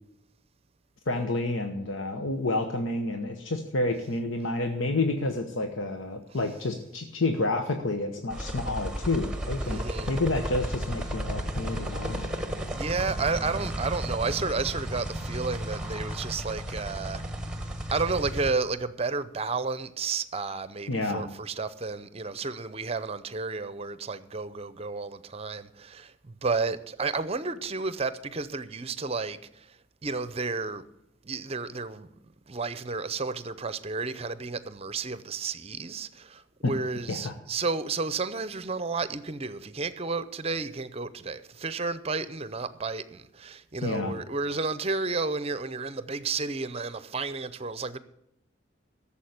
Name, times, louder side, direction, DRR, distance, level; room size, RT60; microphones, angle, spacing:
voice 1, 1.1-12.3 20.9-21.4 36.6-36.7 37.1-37.3 43.8-44.1, left 2 dB, 90° left, 1.0 m, -29 dB
sound 1, 8.3-18.5, right 1 dB, 5° right, 1.1 m, -33 dB
voice 2, 9.6-10.1 12.7-17.2 17.9-30.9 31.2-32.1 32.5-48.0, right 4 dB, 30° right, 0.6 m, -32 dB
13.0 x 7.2 x 8.2 m
head